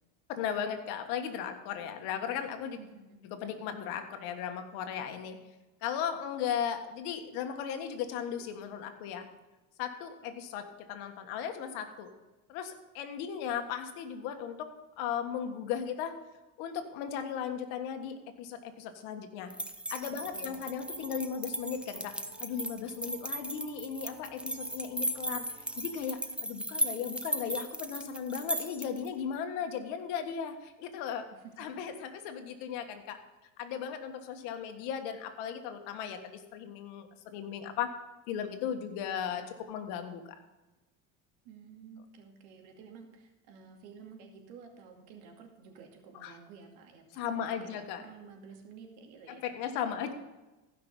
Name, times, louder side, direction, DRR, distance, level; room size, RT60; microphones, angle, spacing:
voice 1, 0.3-2.8 3.3-5.4 5.8-9.3 9.8-12.1 12.5-14.7 15.0-16.1 16.6-19.5 19.9-22.1 22.4-25.4 25.8-31.3 31.6-33.2 33.6-37.9 38.3-40.4 46.2-46.3 47.1-48.0 49.3-50.1, left 8 dB, 75° left, 6 dB, 1.6 m, -36 dB
voice 2, 2.8-3.2 20.3-20.7 31.3-31.5 41.4-50.1, right 6 dB, 75° right, 2 dB, 2.5 m, -52 dB
sound 1, 19.5-29.1, right 1 dB, 5° right, 0.7 m, -37 dB
sound 2, 20.3-26.0, right 4 dB, 50° right, 1.9 m, -58 dB
15.5 x 5.9 x 5.5 m, 1.1 s
supercardioid pair, 105°, 38 cm